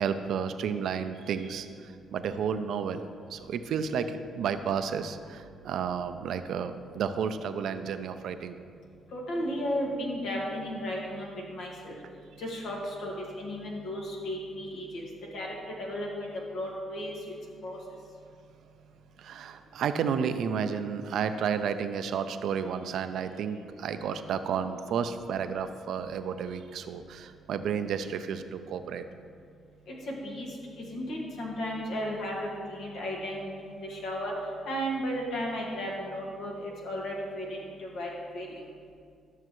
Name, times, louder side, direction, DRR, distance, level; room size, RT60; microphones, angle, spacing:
voice 1, 0.0-3.0 3.3-8.6 19.2-29.0, right 7 dB, 75° right, 9 dB, 0.5 m, -32 dB
voice 2, 9.1-12.0 12.4-15.0 15.3-15.5 15.8-17.1 17.6-17.8 30.1-30.5 30.8-33.5 33.8-34.3 34.7-38.5, equal, 75° left, -2 dB, 1.8 m, -34 dB
13.0 x 6.5 x 3.1 m, 2.2 s
cardioid pair, 90°, 0 cm